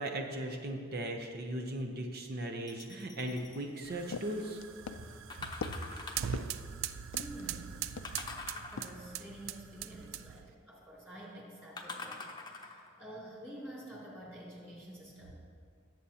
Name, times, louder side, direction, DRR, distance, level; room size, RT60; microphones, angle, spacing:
voice 1, 0.0-4.6 5.7-5.8, right 1 dB, 50° right, 3 dB, 0.7 m, -38 dB
sound 1, 2.7-3.6 5.3-6.4 8.0-9.2 11.8-12.9 13.6-13.7, left 3 dB, 20° left, 0.7 m, -44 dB
sound 2, 3.4-7.6 8.0-8.4 8.8-9.0, left 5 dB, 80° left, 0.4 m, -44 dB
sound 3, 3.8-10.5, right 9 dB, 80° right, 0.4 m, -42 dB
voice 2, 5.0-5.3 6.9-7.7 8.4-15.3, right 1 dB, 10° right, -5 dB, 2.5 m, -49 dB
18.0 x 7.7 x 2.8 m, 2.2 s
head